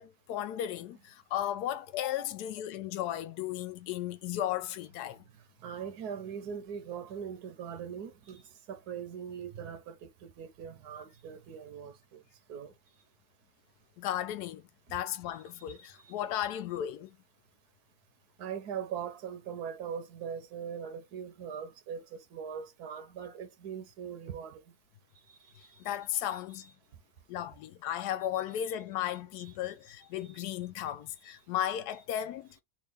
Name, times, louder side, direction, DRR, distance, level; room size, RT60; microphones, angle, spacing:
voice 1, 0.0-5.2 14.0-14.6 14.9-17.2 25.8-26.7 27.3-32.5, left 11 dB, 85° left, 1.1 m, -35 dB
voice 2, 5.6-8.4 8.7-12.2 12.5-12.7 15.8-16.1 18.4-24.6 25.6-26.0 26.3-26.7 29.9-30.3 31.2-31.4, right 7 dB, 90° right, 1.3 m, -41 dB
3.5 x 2.5 x 3.3 m
omnidirectional pair, 1.6 m